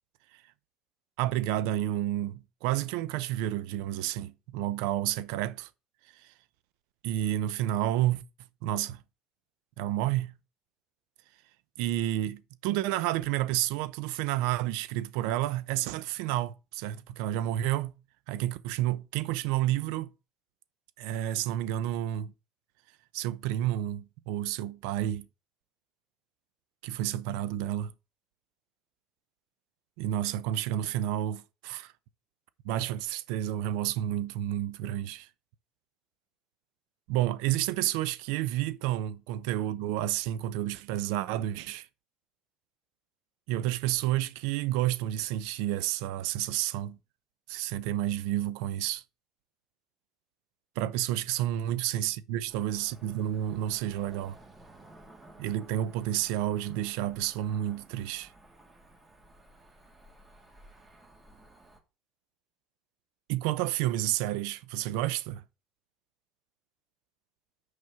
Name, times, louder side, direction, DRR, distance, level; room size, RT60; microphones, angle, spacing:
voice 1, 1.2-5.7 6.1-6.3 7.0-8.2 8.6-9.0 9.8-10.4 11.8-17.9 18.3-20.1 21.0-22.3 23.1-25.2 26.8-27.9 30.0-31.9 32.6-35.3 37.1-41.9 43.5-47.0 47.5-49.0 50.8-54.4 55.4-58.3 63.3-65.4, right 13 dB, 80° right, 0.8 m, -30 dB
Cricket / Motor vehicle (road), 52.5-61.8, right 2 dB, 20° right, 2.9 m, -55 dB
6.6 x 5.3 x 5.8 m
supercardioid pair, 100°, 0 cm